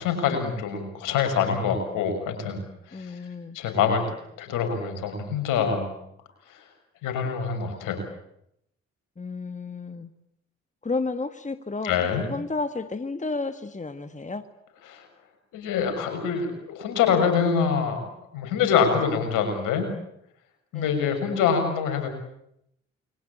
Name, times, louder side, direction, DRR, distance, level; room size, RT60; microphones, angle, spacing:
voice 1, 0.0-3.2 3.5-4.0 4.4-5.9 6.5-6.6 7.0-8.0 11.8-12.2 14.8-15.1 15.5-18.0 18.3-19.9 20.7-22.1, left 6 dB, 70° left, 6 dB, 6.5 m, -25 dB
voice 2, 2.9-3.6 9.2-10.1 10.8-14.4 20.7-20.9, left 3 dB, 20° left, 10 dB, 1.7 m, -32 dB
29.0 x 23.0 x 8.8 m, 0.78 s
figure-of-eight pair, 40°, 33 cm